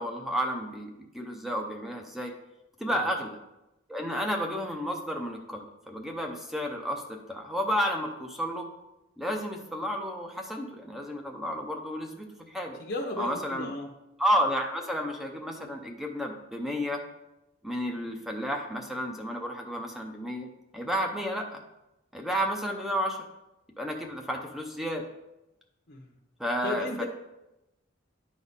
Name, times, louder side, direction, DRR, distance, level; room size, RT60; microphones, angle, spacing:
voice 1, 0.0-2.3 2.8-3.4 3.9-8.7 9.2-12.8 13.2-13.7 14.2-17.0 17.6-20.5 20.7-21.6 22.1-23.2 23.8-25.0 26.4-27.0, equal, ahead, 3 dB, 0.7 m, -31 dB
voice 2, 12.8-13.9 25.9-26.2 26.6-27.0, left 2 dB, 55° left, -1 dB, 0.8 m, -35 dB
10.5 x 4.1 x 3.6 m, 0.93 s
head